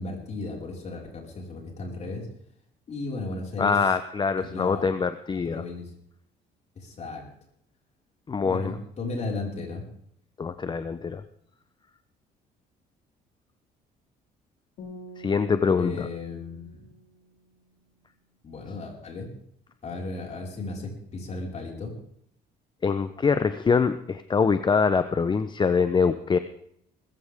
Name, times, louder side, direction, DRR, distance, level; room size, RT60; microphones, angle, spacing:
voice 1, 0.0-2.3 2.9-3.8 4.4-4.9 5.3-5.9 6.8-7.3 8.4-9.8 15.8-16.8 18.4-19.3 19.8-21.9, left 3 dB, 40° left, 0 dB, 5.2 m, -35 dB
voice 2, 3.6-5.6 8.3-8.8 10.4-11.2 15.2-16.1 22.8-26.4, left 5 dB, 25° left, 11 dB, 0.8 m, -24 dB
sound 1, 14.8-18.0, equal, 70° left, 4.9 m, -47 dB
20.5 x 15.0 x 3.6 m, 0.68 s
cardioid pair, 110°, 17 cm